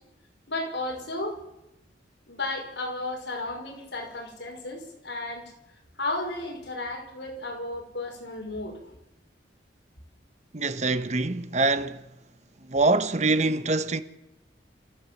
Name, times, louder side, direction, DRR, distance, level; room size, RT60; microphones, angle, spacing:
voice 1, 0.5-1.4 2.3-5.5 6.0-8.9, left 2 dB, 80° left, 5.8 m, -33 dB
voice 2, 10.5-12.1 12.6-14.0, right 3 dB, 40° right, 1.1 m, -24 dB
28.0 x 15.0 x 7.3 m
head